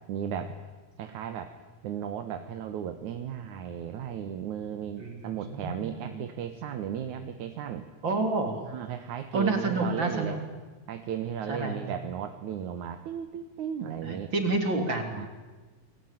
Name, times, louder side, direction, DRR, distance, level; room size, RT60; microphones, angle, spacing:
voice 1, 0.1-0.5 1.0-1.5 1.8-7.8 8.7-10.4 10.9-14.3 15.1-15.3, right 9 dB, 85° right, 8 dB, 2.8 m, -35 dB
voice 2, 5.0-6.2 8.0-8.6 9.3-10.4 11.5-11.9 14.0-15.3, right 3 dB, 40° right, 5 dB, 4.2 m, -29 dB
28.5 x 22.0 x 9.2 m, 1.3 s
omnidirectional pair, 3.4 m